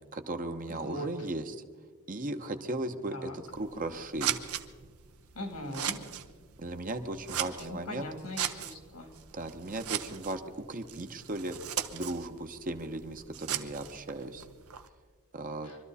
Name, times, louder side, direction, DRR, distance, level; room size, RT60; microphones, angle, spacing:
voice 1, 0.1-1.6 2.1-4.5 6.6-8.1 9.3-10.4 10.7-14.5 15.3-15.7, right 2 dB, 40° right, 7 dB, 0.9 m, -37 dB
voice 2, 0.7-1.1 3.1-3.4 5.3-6.0 7.7-9.1 15.6-15.8, left 1 dB, 90° left, 4 dB, 3.1 m, -40 dB
Scissors, 3.4-14.9, right 10 dB, 80° right, 0.9 m, -39 dB
24.0 x 13.0 x 4.2 m, 1.5 s
head